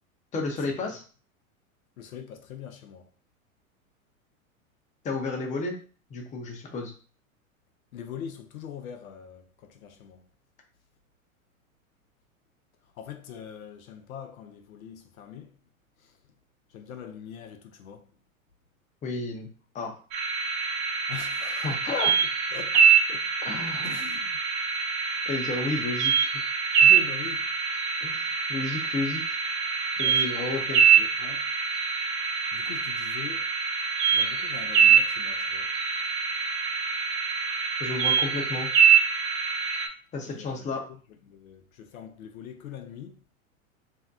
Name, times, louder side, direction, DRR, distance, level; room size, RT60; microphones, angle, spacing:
voice 1, 0.3-1.0 5.0-5.8 6.1-6.9 19.0-19.5 19.7-19.9 21.4-22.2 23.4-24.0 25.3-26.4 28.0-29.2 30.0-30.8 37.8-38.7 40.1-40.9, left 3 dB, 15° left, 0.6 m, -32 dB
voice 2, 2.0-3.1 7.9-10.3 13.0-15.5 16.0-16.1 16.7-18.1 21.1-21.7 22.2-22.8 23.1-23.2 23.8-24.4 26.8-27.5 30.0-30.4 30.7-31.5 32.5-33.5 34.1-35.7 40.2-40.6 40.9-41.0 41.3-43.2, left 8 dB, 75° left, 0.6 m, -42 dB
sound 1, 20.1-39.9, right 7 dB, 30° right, 0.5 m, -24 dB
2.7 x 2.1 x 3.5 m
hypercardioid pair, 100°, 42 cm